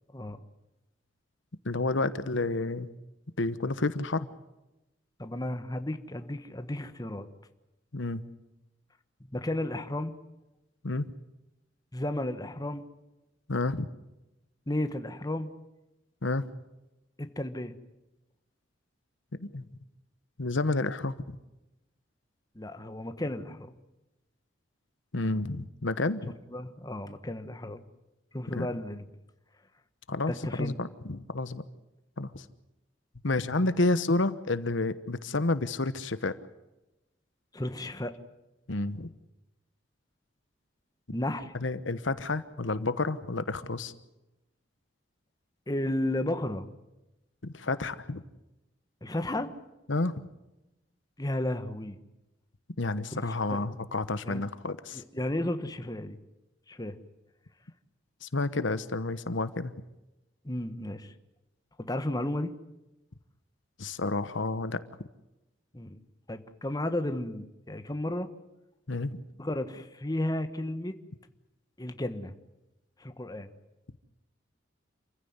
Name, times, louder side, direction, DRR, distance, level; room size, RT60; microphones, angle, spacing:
voice 1, 1.6-2.9 3.4-4.3 7.9-8.2 10.8-11.1 13.5-13.9 16.2-16.5 19.4-19.7 20.4-21.4 25.1-26.3 28.5-28.7 30.1-31.6 32.2-32.4 33.2-36.3 38.7-39.1 41.6-43.9 47.4-48.2 49.9-50.1 52.8-55.0 58.2-59.7 63.8-64.8 68.9-69.2, left 2 dB, 75° left, 13 dB, 1.1 m, -30 dB
voice 2, 5.2-7.3 9.3-10.1 11.9-12.8 14.7-15.5 17.2-17.7 22.5-23.7 26.5-27.8 28.3-29.0 30.3-30.7 37.5-38.1 41.1-41.5 45.7-46.7 49.0-49.5 51.2-52.0 53.1-53.2 53.5-53.6 54.3-54.4 54.9-56.2 56.7-57.0 60.4-61.1 61.8-62.5 65.7-66.0 66.3-68.3 69.4-70.9 71.8-72.3 73.0-73.5, left 1 dB, 20° left, 9 dB, 1.3 m, -33 dB
28.0 x 15.5 x 9.6 m, 0.97 s
head